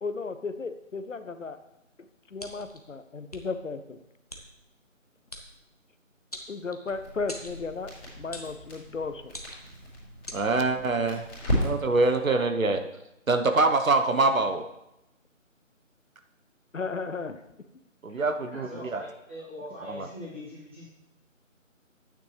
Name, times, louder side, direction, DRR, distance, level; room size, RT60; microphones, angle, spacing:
voice 1, 0.0-1.6 2.3-4.0 6.5-7.9 8.2-9.3 16.7-17.4, left 4 dB, 70° left, 10 dB, 0.8 m, -34 dB
sound 1, 2.4-2.8 3.3-3.4 4.3-4.4 5.3-5.5 6.3-6.9 7.3-7.6 8.3-8.6 9.3-9.7 10.3-10.4, equal, 30° left, 0.7 m, -41 dB
Crackle, 6.9-12.2, equal, 10° left, 2.6 m, -35 dB
voice 2, 10.3-11.2 11.6-12.8 13.3-14.6 18.0-19.0 19.9-20.1, right 3 dB, 80° right, 7 dB, 1.1 m, -24 dB
voice 3, 18.5-20.8, left 1 dB, 10° right, -10 dB, 1.6 m, -42 dB
10.5 x 9.0 x 3.3 m, 0.87 s
figure-of-eight pair, 170°, 40 cm